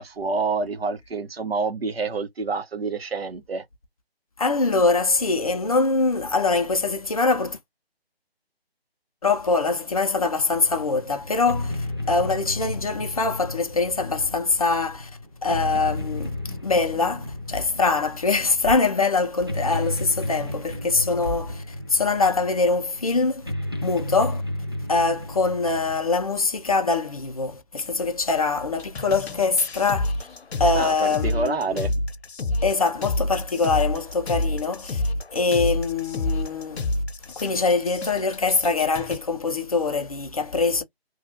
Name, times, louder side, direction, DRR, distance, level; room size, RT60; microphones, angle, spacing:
voice 1, 0.0-3.6 30.7-31.9, right 4 dB, 70° right, 1.1 m, -28 dB
voice 2, 4.4-7.6 9.2-15.1 15.4-16.3 16.6-23.5 23.8-24.4 24.9-30.1 30.6-31.9 32.6-35.0 35.3-36.8 37.4-40.8, left 3 dB, 35° left, 0.5 m, -23 dB
sound 1, 10.5-26.2, left 1 dB, 25° right, 0.4 m, -33 dB
sound 2, 28.7-39.2, left 2 dB, 85° left, 0.8 m, -28 dB
2.9 x 2.3 x 2.7 m
figure-of-eight pair, 160°, 31 cm